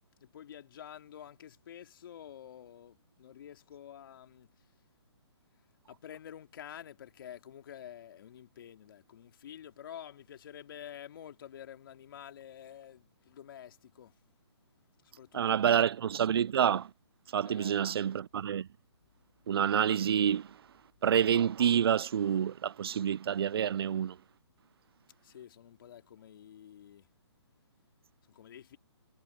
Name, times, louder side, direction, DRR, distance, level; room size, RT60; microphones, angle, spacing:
voice 1, 0.2-4.5 5.9-14.2 15.0-15.8 17.5-17.9 25.2-27.1 28.3-28.8, left 10 dB, 50° left, 2.8 m, -49 dB
voice 2, 15.3-16.9 17.3-18.7 19.5-20.5 21.0-24.2, right 9 dB, 60° right, 0.5 m, -28 dB
hypercardioid pair, 145°, 14 cm